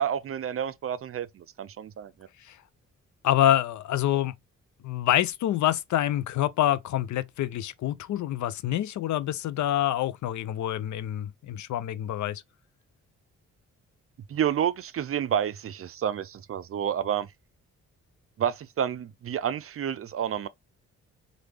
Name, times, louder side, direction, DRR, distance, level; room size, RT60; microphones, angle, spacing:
voice 1, 0.0-2.1 14.3-17.3 18.4-20.5, right 9 dB, 45° right, 0.4 m, -29 dB
voice 2, 3.2-4.3 4.8-12.4, left 12 dB, 65° left, 0.4 m, -26 dB
3.3 x 2.4 x 3.2 m
supercardioid pair, 55°, 33 cm